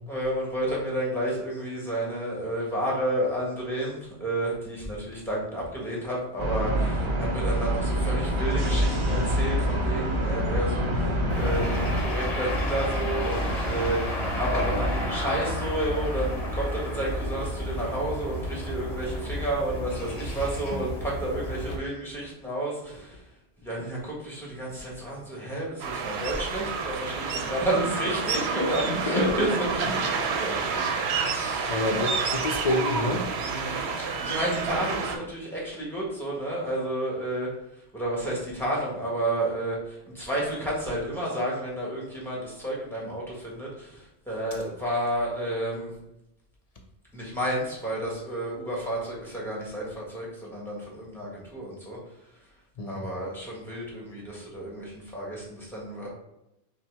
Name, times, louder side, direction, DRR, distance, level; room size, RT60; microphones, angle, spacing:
voice 1, 0.1-23.2 23.6-29.9 30.2-30.9 31.2-31.8 33.4-37.5 37.9-45.9 47.1-52.0 52.8-56.1, right 1 dB, ahead, -4 dB, 1.3 m, -31 dB
sound 1, 6.4-12.0, equal, 50° right, 1.0 m, -26 dB
sound 2, 11.3-21.8, equal, 40° left, 0.8 m, -30 dB
sound 3, 25.8-35.2, right 5 dB, 75° right, 0.8 m, -29 dB
voice 2, 28.6-29.4 30.1-30.3 31.7-33.3 52.8-53.1, left 2 dB, 55° left, 2 dB, 0.4 m, -29 dB
5.5 x 2.2 x 3.3 m, 0.87 s
omnidirectional pair, 1.1 m